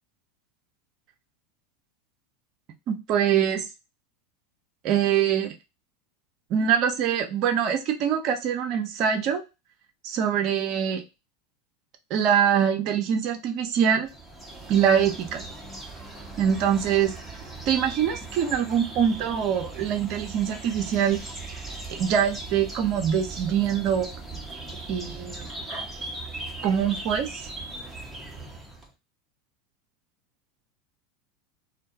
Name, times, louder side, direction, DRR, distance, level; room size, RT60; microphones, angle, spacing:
voice 1, 2.9-3.6 4.8-5.5 6.5-9.4 10.0-11.0 12.1-14.1 14.7-15.5 16.4-17.1 17.7-21.2 21.9-24.1 24.9-25.5 26.6-27.4, right 8 dB, 50° right, 5 dB, 0.6 m, -24 dB
sound 1, 14.0-28.9, right 2 dB, 5° right, 0.8 m, -39 dB
2.2 x 2.1 x 2.7 m, 0.26 s
hypercardioid pair, 90°, 0 cm